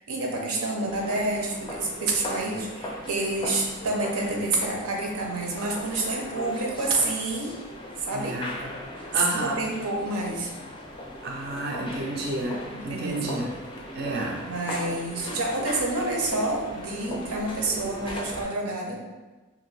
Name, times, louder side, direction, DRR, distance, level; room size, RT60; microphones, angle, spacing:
voice 1, 0.0-7.6 8.0-8.4 9.4-10.5 12.7-13.3 14.5-19.0, right 2 dB, 90° right, 0 dB, 0.6 m, -28 dB
sound 1, 0.9-18.4, left 1 dB, 25° left, 0.4 m, -38 dB
voice 2, 8.1-8.6 9.1-9.6 11.2-13.5 13.9-14.4, right 2 dB, 50° right, -1 dB, 0.4 m, -31 dB
2.5 x 2.5 x 3.1 m, 1.2 s
head